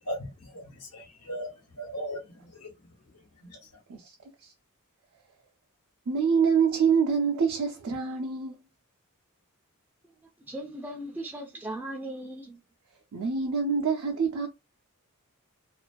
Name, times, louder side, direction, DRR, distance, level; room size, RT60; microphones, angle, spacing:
voice 1, 0.0-2.9 3.1-3.8, equal, 90° left, 1.1 m, -39 dB
voice 2, 6.1-8.6 13.1-14.5, right 6 dB, 75° right, 0.4 m, -26 dB
voice 3, 10.5-12.6, right 1 dB, 10° right, 0.3 m, -38 dB
2.4 x 2.3 x 2.2 m
head